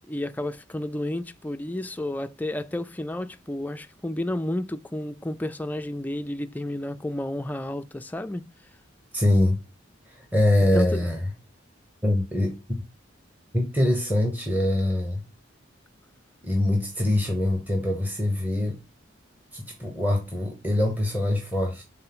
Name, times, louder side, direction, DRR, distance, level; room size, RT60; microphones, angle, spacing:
voice 1, 0.1-8.4 10.7-11.0, left 1 dB, 10° left, 0.3 m, -31 dB
voice 2, 9.1-9.6 10.1-11.2 12.0-12.6 13.5-15.2 16.4-18.8 19.5-21.8, left 1 dB, 10° right, 0.9 m, -24 dB
5.5 x 3.7 x 5.9 m
head